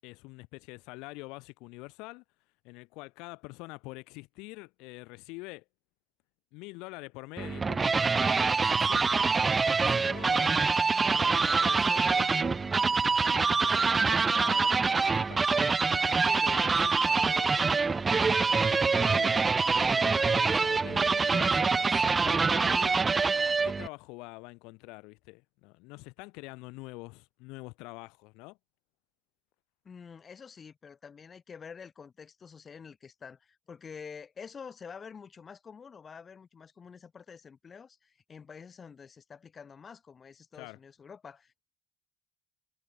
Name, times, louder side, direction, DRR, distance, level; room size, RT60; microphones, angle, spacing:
voice 1, 0.0-2.2 2.6-5.6 6.5-9.2 9.7-10.8 11.1-19.5 19.9-28.6 40.6-40.8, left 26 dB, 80° left, 7.3 m, -45 dB
sound 1, 7.4-23.9, right 4 dB, 30° right, 0.7 m, -25 dB
voice 2, 29.8-41.6, left 6 dB, 40° left, 6.7 m, -48 dB
hypercardioid pair, 60°, 0 cm